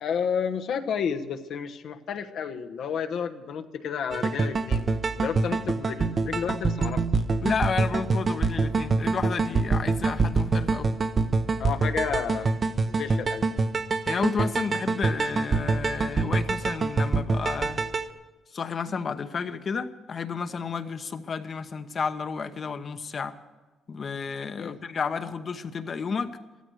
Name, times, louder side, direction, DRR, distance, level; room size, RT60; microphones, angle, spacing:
voice 1, 0.0-4.9 5.2-7.0 11.6-12.5 12.9-13.5 24.6-24.8, left 7 dB, 70° left, 6 dB, 1.0 m, -31 dB
sound 1, 4.1-18.1, right 4 dB, 40° right, 0.8 m, -26 dB
voice 2, 7.4-10.9 14.1-17.8 18.5-23.3 23.9-26.3, left 5 dB, 45° left, 9 dB, 1.0 m, -31 dB
14.5 x 13.5 x 6.4 m, 1.3 s
cardioid pair, 90°, 0 cm